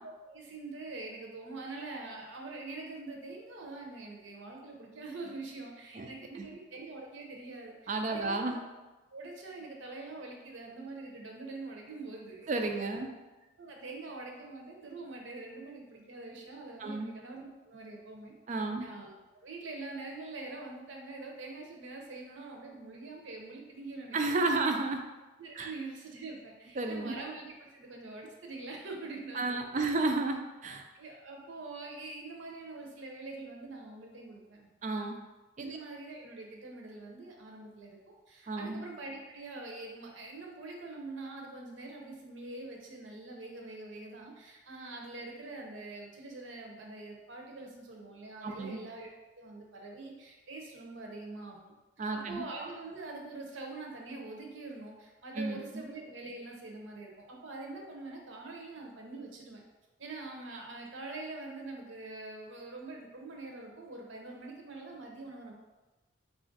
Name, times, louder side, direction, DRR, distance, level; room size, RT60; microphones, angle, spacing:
voice 1, 0.0-8.6 9.1-13.1 13.6-18.3 18.8-24.2 25.4-29.4 29.7-30.0 30.6-34.6 35.6-38.0 38.3-49.1 49.4-51.7 52.1-59.6 60.0-65.5, right 3 dB, 65° right, 0 dB, 0.7 m, -44 dB
voice 2, 7.9-8.6 12.5-13.1 16.8-17.1 18.5-18.9 24.1-25.0 25.6-25.7 26.8-27.2 29.3-30.8 34.8-35.2 35.6-35.8 38.5-38.8 48.4-48.8 52.0-52.4 55.4-55.8, right 3 dB, 35° right, 4 dB, 0.3 m, -32 dB
4.0 x 2.5 x 3.8 m, 1.1 s
head